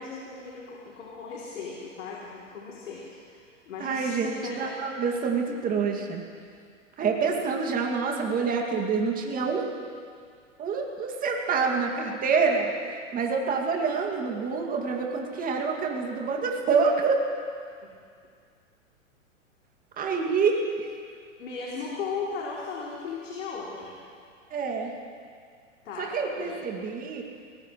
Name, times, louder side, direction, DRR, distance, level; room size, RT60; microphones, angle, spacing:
voice 1, 0.0-4.8 21.4-23.9 25.8-26.6, left 4 dB, 65° left, -4 dB, 3.1 m, -37 dB
voice 2, 3.8-6.2 7.0-9.7 10.6-12.7 13.1-17.2 20.0-20.6 24.5-24.9 26.0-27.2, right 5 dB, 20° right, 1 dB, 2.2 m, -27 dB
23.0 x 19.0 x 3.1 m, 2.2 s
hypercardioid pair, 115°, 39 cm